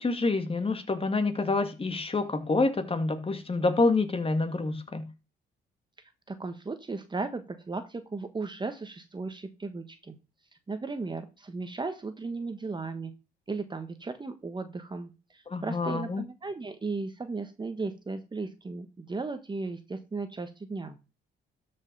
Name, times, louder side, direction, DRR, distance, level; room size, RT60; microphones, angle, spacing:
voice 1, 0.0-5.1 15.5-16.2, left 3 dB, 30° left, 9 dB, 2.1 m, -27 dB
voice 2, 6.3-10.2 10.7-13.1 13.5-21.0, right 3 dB, 25° right, 9 dB, 1.2 m, -36 dB
12.5 x 5.5 x 5.4 m, 0.30 s
cardioid pair, 90°, 20 cm